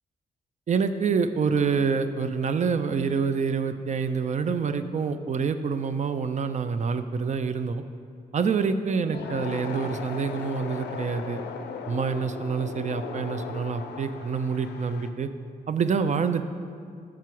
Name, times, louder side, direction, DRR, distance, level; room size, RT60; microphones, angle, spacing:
voice 1, 0.7-7.8 8.3-11.4 11.9-15.3 15.7-16.5, right 5 dB, 40° right, 10 dB, 0.4 m, -27 dB
sound 1, 9.1-15.1, left 6 dB, 75° left, 0.4 m, -37 dB
6.0 x 4.5 x 4.6 m, 2.3 s
supercardioid pair, 55°, 18 cm